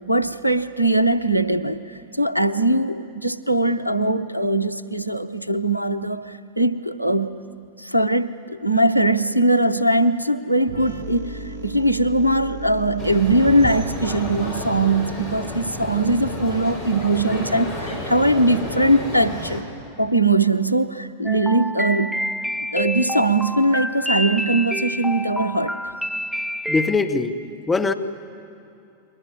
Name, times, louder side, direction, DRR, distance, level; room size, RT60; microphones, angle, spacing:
voice 1, 0.1-1.8 2.2-7.4 7.8-19.6 20.0-22.2 22.7-25.7, right 1 dB, 90° right, 13 dB, 0.8 m, -21 dB
sound 1, 10.7-18.3, right 2 dB, 65° right, 1.2 m, -38 dB
sound 2, 13.0-19.6, left 1 dB, 45° left, 6.3 m, -31 dB
sound 3, 21.2-27.0, equal, ahead, 0.5 m, -28 dB
voice 2, 26.7-27.4 27.7-27.9, left 4 dB, 15° left, 6 dB, 1.5 m, -21 dB
29.5 x 21.5 x 7.4 m, 2.7 s
figure-of-eight pair, 90°, 0 cm